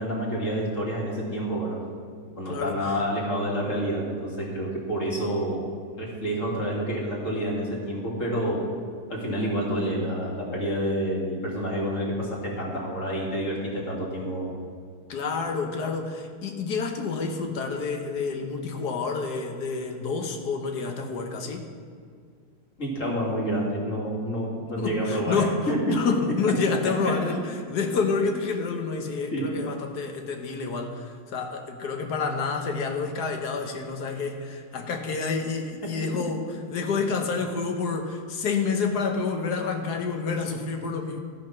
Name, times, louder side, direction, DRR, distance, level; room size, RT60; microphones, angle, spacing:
voice 1, 0.0-1.8 2.4-5.7 6.0-8.6 9.1-14.5 22.8-26.0 29.3-29.5 36.0-36.2, equal, 50° left, -4 dB, 2.4 m, -28 dB
voice 2, 2.5-2.8 15.1-21.7 24.8-25.6 25.9-27.4 27.7-31.0 31.3-36.4 36.7-41.2, left 4 dB, 75° left, 4 dB, 1.5 m, -28 dB
13.0 x 5.8 x 5.8 m, 2.1 s
omnidirectional pair, 1.7 m